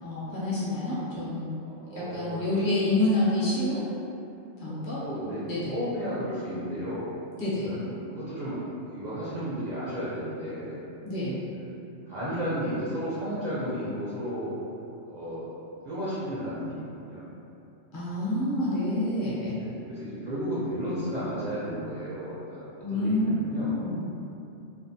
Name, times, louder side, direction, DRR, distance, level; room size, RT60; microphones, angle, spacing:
voice 1, 0.0-1.5 1.9-3.9 4.6-5.0 5.5-5.7 7.4-7.7 11.0-11.4 17.9-19.6 22.8-23.3 23.8-24.0, left 1 dB, 45° left, -10 dB, 0.8 m, -28 dB
voice 2, 1.8-2.6 4.7-5.4 5.7-7.1 7.6-8.6 8.8-10.8 11.5-11.7 12.1-14.5 15.0-15.5 15.8-17.2 19.6-23.8, equal, 60° right, -11 dB, 0.4 m, -33 dB
2.6 x 2.1 x 2.6 m, 2.8 s
omnidirectional pair, 1.3 m